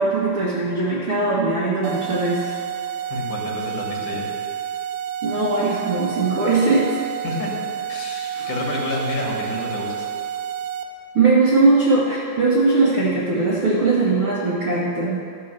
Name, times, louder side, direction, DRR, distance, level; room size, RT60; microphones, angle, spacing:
voice 1, 0.0-2.5 5.2-7.0 8.3-8.5 11.1-15.2, right 3 dB, 70° right, -7 dB, 1.2 m, -20 dB
sound 1, 1.8-10.8, right 9 dB, 85° right, 2.7 m, -29 dB
voice 2, 3.1-4.3 7.2-7.5 7.9-10.1, left 2 dB, 55° left, -2 dB, 3.2 m, -29 dB
14.0 x 5.6 x 6.8 m, 2.4 s
omnidirectional pair, 4.7 m